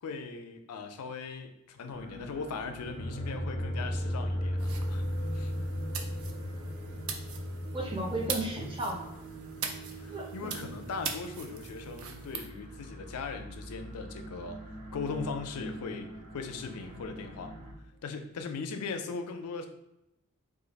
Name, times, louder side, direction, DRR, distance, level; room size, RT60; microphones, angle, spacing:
voice 1, 0.0-5.0 5.3-5.5 9.9-14.6 14.9-17.5 18.0-19.7, left 4 dB, 90° left, 7 dB, 0.4 m, -39 dB
sound 1, 1.9-17.7, right 1 dB, 45° right, 0.9 m, -46 dB
sound 2, 2.9-11.7, equal, 25° left, 0.4 m, -36 dB
sound 3, 4.6-12.5, right 6 dB, 70° right, 0.4 m, -42 dB
voice 2, 7.7-9.1 10.1-10.7, right 1 dB, 25° right, -1 dB, 0.6 m, -35 dB
2.5 x 2.4 x 4.0 m, 0.86 s
head